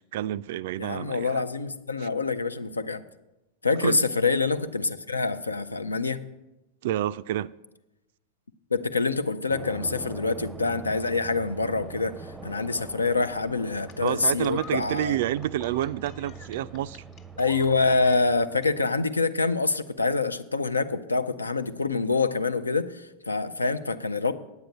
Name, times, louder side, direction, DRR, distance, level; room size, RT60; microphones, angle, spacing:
voice 1, 0.1-1.4 2.0-2.1 3.8-4.0 6.8-7.5 14.0-17.0, right 13 dB, 55° right, 0.3 m, -29 dB
voice 2, 0.8-3.0 3.6-6.2 8.7-15.2 17.4-24.3, left 3 dB, 80° left, 0.6 m, -26 dB
sound 1, 9.5-18.8, right 4 dB, 10° right, 0.6 m, -43 dB
sound 2, 13.9-18.7 19.9-20.0, left 7 dB, 35° left, 0.9 m, -47 dB
9.4 x 8.9 x 6.6 m
figure-of-eight pair, 90°, 0 cm